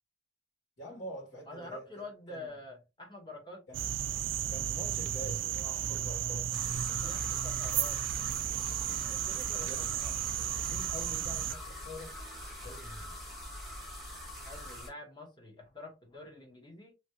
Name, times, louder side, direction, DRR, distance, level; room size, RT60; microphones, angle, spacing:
voice 1, 0.8-2.5 3.7-3.9 4.5-7.5 8.9-9.9 10.6-13.2, equal, 80° left, 1.9 m, -47 dB
voice 2, 1.5-3.6 7.0-8.0 9.1-9.7 10.0-10.1 14.4-16.9, left 2 dB, 25° left, 1.1 m, -47 dB
sound 1, 3.7-11.5, right 11 dB, 80° right, 0.3 m, -33 dB
sound 2, 6.5-14.9, left 1 dB, ahead, 1.1 m, -44 dB
3.0 x 2.8 x 2.8 m
head